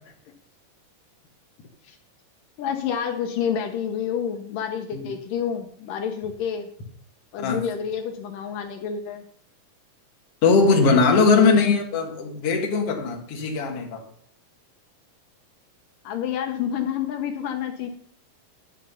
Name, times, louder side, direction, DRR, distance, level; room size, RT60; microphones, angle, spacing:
voice 1, 2.6-6.7 7.3-9.2 10.8-11.7 16.0-17.9, left 7 dB, 80° left, 5 dB, 2.6 m, -28 dB
voice 2, 10.4-14.0, left 4 dB, 50° left, 2 dB, 2.6 m, -20 dB
10.5 x 10.0 x 5.6 m, 0.62 s
omnidirectional pair, 3.9 m